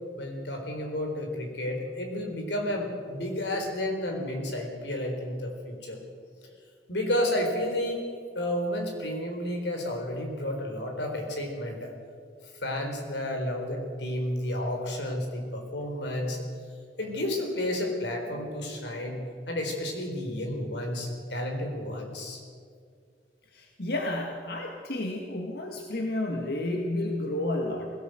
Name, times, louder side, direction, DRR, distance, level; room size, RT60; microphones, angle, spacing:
voice 1, 0.2-6.0 6.9-8.0 8.3-11.9 12.6-16.4 17.0-22.4, left 1 dB, 90° left, 3 dB, 4.2 m, -31 dB
voice 2, 23.5-27.9, left 1 dB, 65° left, 1 dB, 2.0 m, -31 dB
20.0 x 17.0 x 7.9 m, 2.2 s
head